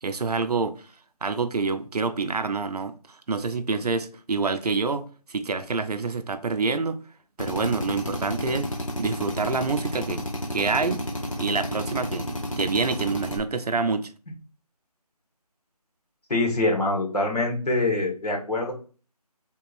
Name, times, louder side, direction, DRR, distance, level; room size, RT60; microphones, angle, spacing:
voice 1, 0.0-0.9 1.2-7.0 7.4-8.7 9.0-11.0 11.4-12.3 12.6-14.1, right 4 dB, 75° right, 0.5 m, -27 dB
Drill, 7.4-13.4, left 1 dB, 55° left, 0.9 m, -31 dB
voice 2, 16.3-18.7, left 2 dB, 70° left, 1.6 m, -24 dB
3.5 x 3.1 x 2.5 m
figure-of-eight pair, 175°, 20 cm